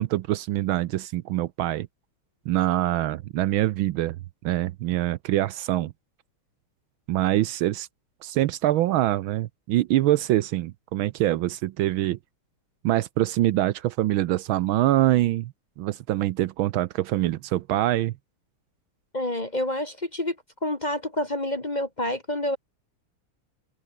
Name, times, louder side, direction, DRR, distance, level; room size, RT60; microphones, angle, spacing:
voice 1, 0.0-1.9 2.5-4.2 4.4-5.9 7.1-7.9 8.2-12.2 12.8-18.1, right 14 dB, 75° right, 1.4 m, -24 dB
voice 2, 19.1-20.3 20.6-22.6, left 1 dB, 25° left, 1.4 m, -28 dB
omnidirectional pair, 2.4 m